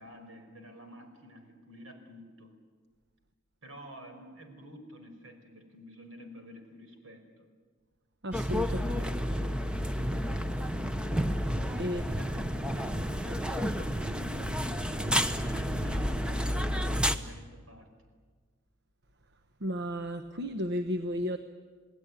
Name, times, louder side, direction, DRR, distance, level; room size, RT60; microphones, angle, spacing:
voice 1, 0.0-2.5 3.6-7.4 8.6-9.2 11.8-17.9, equal, 80° right, 5 dB, 5.0 m, -50 dB
voice 2, 8.2-8.7 9.4-9.5 11.8-12.0 19.6-21.4, equal, 60° right, 8 dB, 1.1 m, -33 dB
sound 1, 8.3-17.2, equal, 5° right, 0.9 m, -30 dB
29.0 x 18.5 x 9.7 m, 1.5 s
head